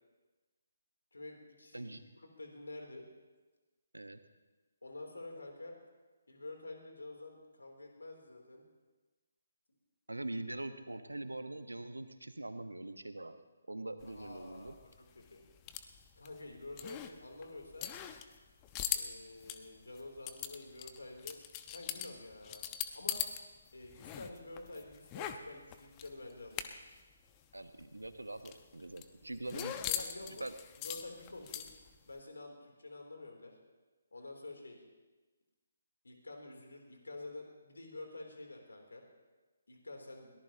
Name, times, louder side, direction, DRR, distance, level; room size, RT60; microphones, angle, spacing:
voice 1, 1.1-3.0 4.8-5.7 6.3-8.6 14.0-14.8 15.1-15.4 16.2-17.9 18.9-21.4 21.7-22.6 22.9-23.2 23.7-26.7 29.5-30.4 30.8-31.7 32.1-33.5 34.1-34.8 36.0-39.0 39.7-40.3, left 2 dB, 75° left, 2 dB, 3.3 m, -48 dB
voice 2, 10.1-13.3 13.7-14.7 27.5-29.7 30.4-30.5, right 2 dB, 85° right, 9 dB, 1.2 m, -43 dB
sound 1, 14.0-23.4 23.7-27.0 27.3-27.4 27.7-32.0, left 11 dB, 25° left, 0.9 m, -41 dB
22.0 x 18.0 x 3.0 m, 1.3 s
figure-of-eight pair, 145°, 0 cm